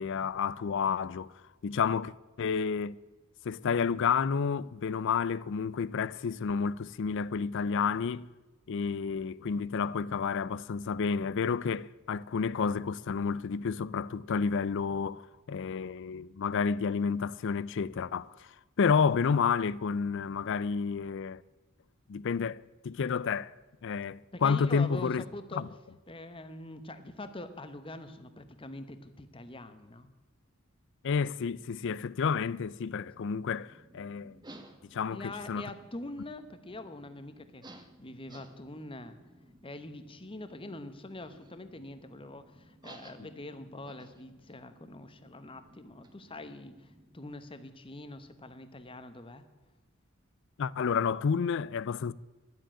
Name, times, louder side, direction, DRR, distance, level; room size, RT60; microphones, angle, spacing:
voice 1, 0.0-2.9 3.4-8.3 8.7-21.4 22.1-23.5 23.8-25.2 25.6-25.7 31.0-34.4 34.8-35.7 50.6-52.1, left 6 dB, 60° left, 0.4 m, -30 dB
voice 2, 24.3-25.6 26.1-30.1 35.1-39.3 39.6-49.4, left 2 dB, 25° left, 1.0 m, -44 dB
sound 1, 33.0-47.3, right 1 dB, 20° right, 1.1 m, -56 dB
11.5 x 7.7 x 9.9 m
head